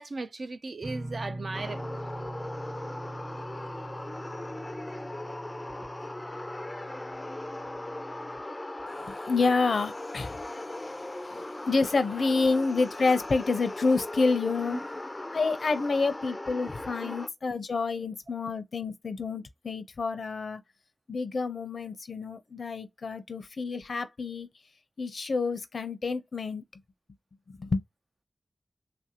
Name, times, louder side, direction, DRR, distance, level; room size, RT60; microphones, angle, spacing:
voice 1, 0.0-1.8 11.3-11.4 17.0-17.1, right 3 dB, 70° right, 0.5 m, -37 dB
sound 1, 0.8-8.4, right 1 dB, 50° right, 0.9 m, -42 dB
sound 2, 1.5-17.3, left 1 dB, 25° left, 0.3 m, -39 dB
voice 2, 8.9-14.9 15.3-20.6 21.1-24.5 25.0-26.6 27.5-27.8, left 4 dB, 85° left, 0.6 m, -29 dB
3.1 x 2.5 x 2.8 m
wide cardioid pair, 65°, 0 cm